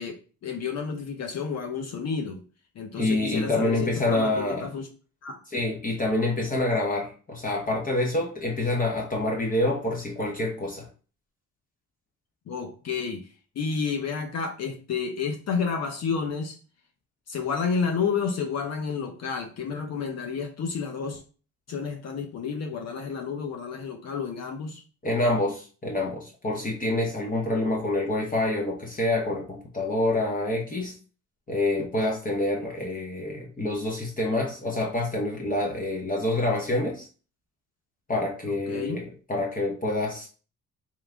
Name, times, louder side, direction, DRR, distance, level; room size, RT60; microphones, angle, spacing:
voice 1, 0.0-2.4 2.8-4.9 5.2-5.4 12.5-13.3 13.6-16.5 17.3-21.2 21.7-24.8 38.5-39.0, left 5 dB, 60° left, 5 dB, 0.7 m, -30 dB
voice 2, 3.0-4.6 5.5-10.9 25.0-30.9 31.5-37.1 38.1-39.0 39.3-40.3, left 2 dB, 25° left, -1 dB, 0.9 m, -27 dB
3.7 x 3.0 x 3.4 m, 0.37 s
cardioid pair, 110°, 30 cm